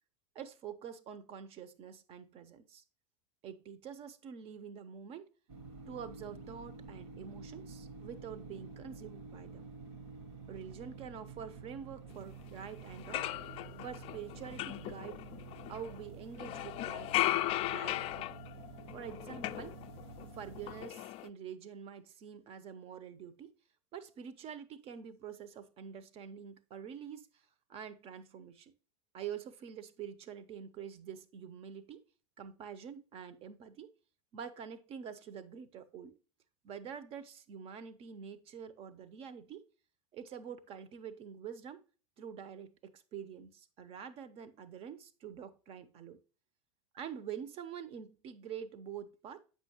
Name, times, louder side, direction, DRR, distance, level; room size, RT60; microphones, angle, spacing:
voice 1, 0.3-2.8 3.4-5.3 5.9-9.7 10.5-13.3 13.8-15.2 15.7-17.2 17.7-18.3 18.9-19.8 20.2-23.5 23.9-27.3 27.7-28.7 29.1-32.1 32.4-33.9 34.3-36.2 36.6-39.6 40.1-41.8 42.2-46.2 46.9-49.4, right 8 dB, 40° right, 0.8 m, -46 dB
sound 1, 5.5-20.9, right 4 dB, 60° right, 1.3 m, -50 dB
sound 2, 12.5-12.6 12.9-16.0 16.4-20.3 20.6-21.3, left 15 dB, 40° left, 0.3 m, -37 dB
8.3 x 5.6 x 2.9 m
hypercardioid pair, 90°, 16 cm